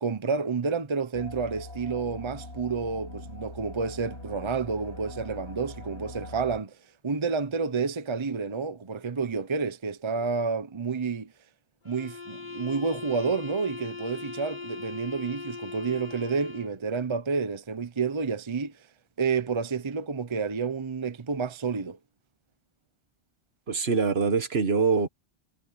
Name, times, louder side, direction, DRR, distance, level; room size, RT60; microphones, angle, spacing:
voice 1, 0.0-6.8 7.0-11.3 11.8-18.8 19.2-22.0, right 5 dB, 30° right, 0.8 m, -30 dB
sound 1, 1.1-6.6, left 1 dB, 70° left, 7.0 m, -42 dB
sound 2, 11.8-16.8, left 4 dB, 45° left, 1.8 m, -40 dB
voice 2, 23.7-25.1, right 5 dB, 65° right, 1.6 m, -24 dB
omnidirectional pair, 1.2 m